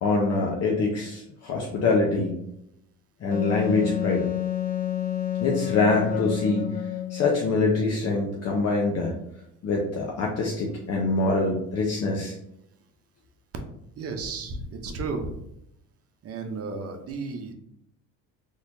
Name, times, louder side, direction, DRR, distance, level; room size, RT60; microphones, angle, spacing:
voice 1, 0.0-2.4 3.2-4.3 5.4-9.1 9.6-12.4, left 3 dB, 50° left, -1 dB, 0.8 m, -25 dB
Wind instrument woodwind instrument, 3.3-7.4, left 11 dB, 25° left, 0.4 m, -29 dB
voice 2, 14.0-15.4 16.2-17.5, right 3 dB, 45° right, 5 dB, 0.8 m, -33 dB
4.2 x 3.1 x 2.7 m, 0.78 s
cardioid pair, 95°, 32 cm